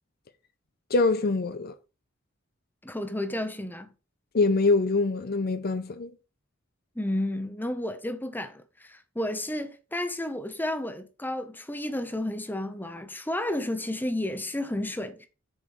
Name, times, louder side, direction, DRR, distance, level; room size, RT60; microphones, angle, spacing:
voice 1, 0.9-1.7 4.3-6.1, left 3 dB, 50° left, 0.7 m, -24 dB
voice 2, 2.8-3.9 6.9-15.3, left 1 dB, 10° left, 1.1 m, -32 dB
7.3 x 5.1 x 5.5 m
head